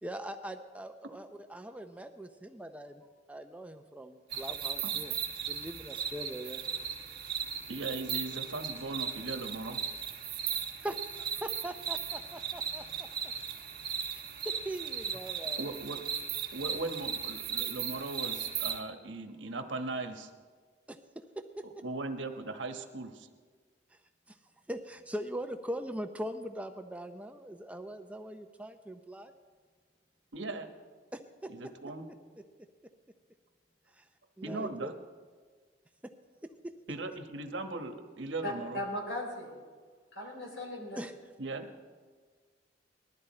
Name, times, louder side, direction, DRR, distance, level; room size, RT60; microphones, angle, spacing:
voice 1, 0.0-3.0 3.3-5.1 5.5-6.6 10.8-13.1 14.1-15.6 20.9-21.0 21.6-21.7 24.3-24.4 24.7-29.3 31.1-31.5 33.9-34.1 34.4-34.9 41.0-41.1, right 1 dB, 5° right, 7 dB, 0.5 m, -41 dB
sound 1, 4.3-18.8, right 7 dB, 55° right, 1.6 m, -37 dB
voice 2, 7.7-9.8 15.6-16.0 16.5-20.3 21.8-23.3 30.3-30.7 31.5-32.1 34.4-34.9 36.9-38.8 41.4-41.7, right 2 dB, 85° right, 6 dB, 1.2 m, -38 dB
voice 3, 38.4-39.5 40.1-41.0, left 1 dB, 80° left, 0 dB, 4.2 m, -37 dB
20.0 x 12.5 x 4.3 m, 1.5 s
head